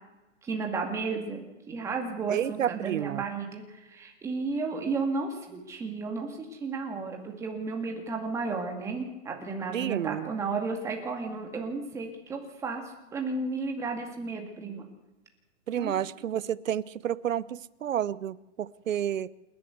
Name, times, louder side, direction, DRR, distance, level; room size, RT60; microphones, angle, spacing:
voice 1, 0.4-3.6 3.9-12.8 13.1-14.9 15.7-15.9, right 4 dB, 5° right, 2 dB, 2.2 m, -33 dB
voice 2, 2.3-3.2 9.7-10.3 15.7-19.3, right 10 dB, 75° right, 18 dB, 0.9 m, -30 dB
28.0 x 11.0 x 8.1 m, 1.0 s
hypercardioid pair, 170°, 39 cm